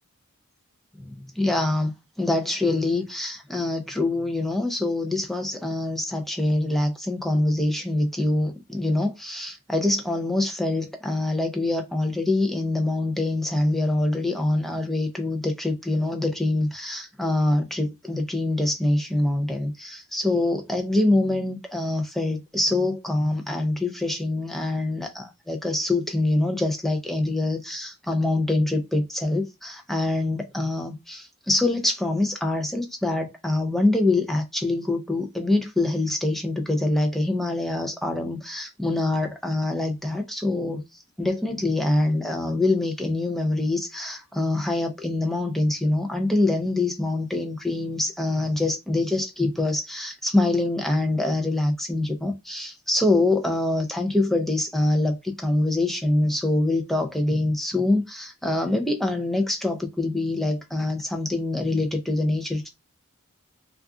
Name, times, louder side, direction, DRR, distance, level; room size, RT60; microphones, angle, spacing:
voice 1, 1.0-1.9 2.2-40.8 41.2-62.7, left 2 dB, ahead, 0.5 m, -25 dB
2.4 x 2.3 x 3.6 m
head